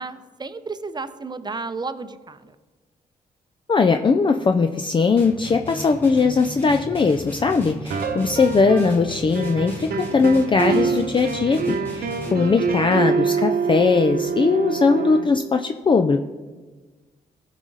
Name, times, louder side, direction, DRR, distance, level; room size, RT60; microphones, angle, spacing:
voice 1, 0.0-2.6, right 4 dB, 25° right, 11 dB, 0.7 m, -32 dB
voice 2, 3.7-16.2, left 4 dB, 30° left, 6 dB, 0.5 m, -20 dB
sound 1, 5.2-12.7, equal, 10° left, 2.9 m, -37 dB
sound 2, 7.9-9.1 9.3-15.2, right 5 dB, 70° right, 0.9 m, -25 dB
14.5 x 4.9 x 3.9 m, 1.3 s
supercardioid pair, 55°, 16 cm